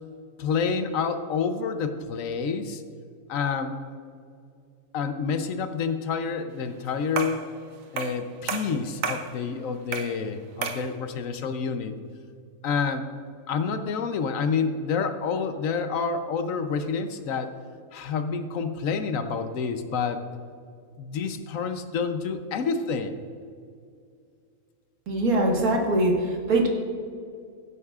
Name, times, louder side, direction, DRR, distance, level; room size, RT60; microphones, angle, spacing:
voice 1, 0.4-2.8 3.3-3.8 4.9-7.4 7.9-12.0 12.6-13.1 13.5-17.5 17.9-20.2 21.0-23.1, left 5 dB, 70° left, 9 dB, 1.0 m, -28 dB
sound 1, 7.2-7.5 8.0-8.2 8.5-9.3 9.9-10.2 10.6-10.9, right 5 dB, 70° right, 1.2 m, -31 dB
voice 2, 25.1-26.7, right 1 dB, 90° right, 0 dB, 2.0 m, -22 dB
16.0 x 8.3 x 2.4 m, 2.3 s
omnidirectional pair, 1.5 m